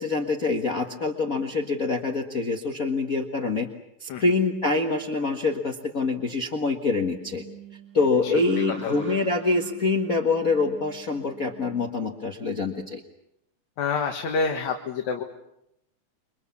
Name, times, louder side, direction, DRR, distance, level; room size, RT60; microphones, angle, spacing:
voice 1, 0.0-3.7 4.0-7.4 7.9-13.0, left 3 dB, 40° left, 3 dB, 1.4 m, -25 dB
sound 1, 6.9-11.9, right 9 dB, 25° right, 2.0 m, -46 dB
voice 2, 8.7-9.1 13.8-15.2, left 5 dB, 70° left, 3 dB, 2.9 m, -28 dB
28.5 x 24.0 x 7.2 m, 0.83 s
omnidirectional pair, 3.4 m